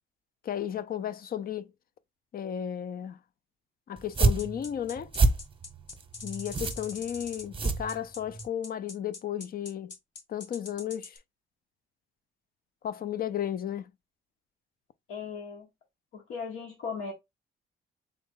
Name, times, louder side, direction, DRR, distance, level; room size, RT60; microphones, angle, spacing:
voice 1, 0.4-1.7 2.3-3.2 3.9-5.1 6.2-9.9 10.3-11.2 12.8-13.9, left 10 dB, 50° left, 0.5 m, -34 dB
sound 1, 4.0-8.5, right 3 dB, 25° right, 0.8 m, -28 dB
sound 2, 4.4-11.2, left 4 dB, 65° left, 1.4 m, -43 dB
voice 2, 15.1-15.7 16.1-17.1, left 5 dB, 80° left, 1.4 m, -37 dB
3.7 x 3.0 x 3.7 m
cardioid pair, 90°, 20 cm